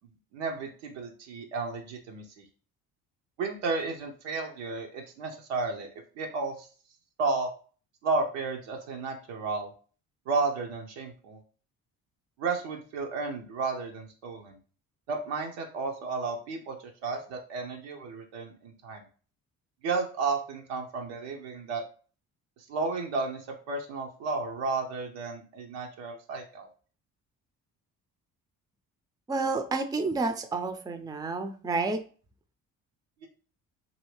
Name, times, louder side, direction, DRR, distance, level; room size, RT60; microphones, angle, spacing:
voice 1, 0.3-2.2 3.4-5.9 6.2-6.7 7.2-7.5 8.0-9.7 10.3-11.4 12.4-14.6 15.1-16.8 17.0-19.0 19.8-21.8 22.7-23.4 23.7-26.7 33.2-33.3, right 4 dB, 75° right, 1 dB, 0.7 m, -32 dB
voice 2, 29.3-32.0, right 3 dB, 10° right, 7 dB, 0.4 m, -30 dB
2.7 x 2.7 x 3.1 m, 0.40 s
hypercardioid pair, 50°, 42 cm